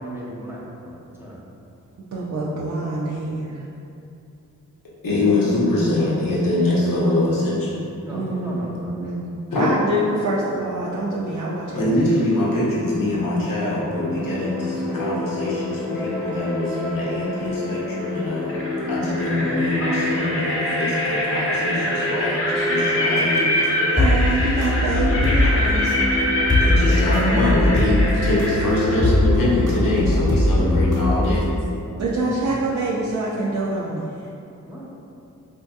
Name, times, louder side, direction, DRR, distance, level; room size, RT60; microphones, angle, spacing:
voice 1, 0.0-1.4 8.0-9.1 31.7-32.6 34.6-34.9, equal, 5° right, -6 dB, 0.8 m, -37 dB
voice 2, 2.0-3.7 8.1-9.3 9.6-12.0 24.0-26.1 32.0-34.2, right 2 dB, 60° right, -6 dB, 0.5 m, -26 dB
voice 3, 5.0-7.8 9.5-9.7 11.7-18.6 18.9-24.1 26.6-31.5, left 2 dB, 80° left, -7 dB, 0.9 m, -23 dB
sound 1, 13.8-31.3, left 1 dB, 10° left, 1.0 m, -23 dB
sound 2, 16.1-16.5 18.0-18.1 18.5-29.0, left 1 dB, 40° left, 0.8 m, -25 dB
4.2 x 2.7 x 2.3 m, 2.7 s
cardioid pair, 45°, 33 cm